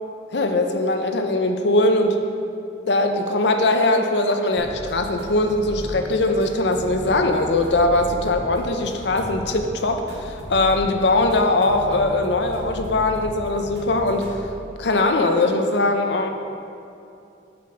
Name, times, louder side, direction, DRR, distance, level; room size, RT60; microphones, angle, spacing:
voice 1, 0.3-2.2 2.9-14.3 14.8-16.3, left 2 dB, 75° left, 5 dB, 0.7 m, -21 dB
sound 1, 4.6-14.3, equal, 70° right, 1.7 m, -36 dB
7.0 x 5.2 x 5.7 m, 2.6 s
head